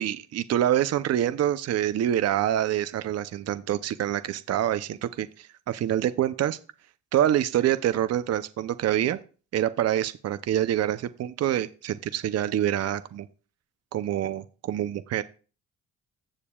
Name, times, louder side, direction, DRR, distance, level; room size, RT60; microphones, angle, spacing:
voice 1, 0.0-6.6 7.1-9.2 9.5-13.3 13.9-15.2, right 11 dB, 55° right, 12 dB, 0.6 m, -26 dB
16.0 x 6.7 x 2.3 m, 0.35 s
cardioid pair, 90°, 30 cm